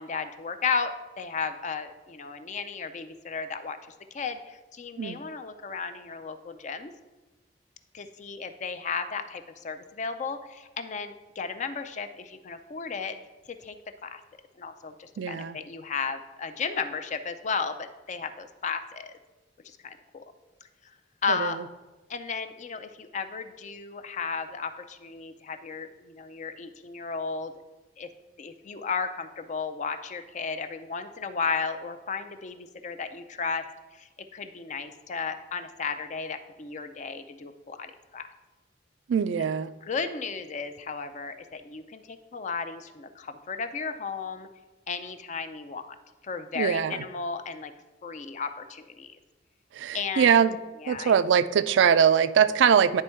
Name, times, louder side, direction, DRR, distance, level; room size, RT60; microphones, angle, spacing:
voice 1, 0.0-3.8 4.1-6.9 7.9-13.2 13.5-13.8 14.0-14.2 14.6-19.1 19.6-20.2 21.2-21.6 22.1-27.5 28.0-28.1 28.4-33.6 33.9-38.3 39.8-44.5 44.9-46.0 46.2-47.7 48.0-49.1 49.9-50.4 50.8-51.1, left 5 dB, 40° left, 9 dB, 0.4 m, -34 dB
voice 2, 15.2-15.6 21.3-21.6 39.1-39.7 46.5-47.0 49.7-50.6 50.9-53.0, right 7 dB, 75° right, 14 dB, 0.3 m, -22 dB
9.9 x 3.5 x 4.4 m, 1.2 s
head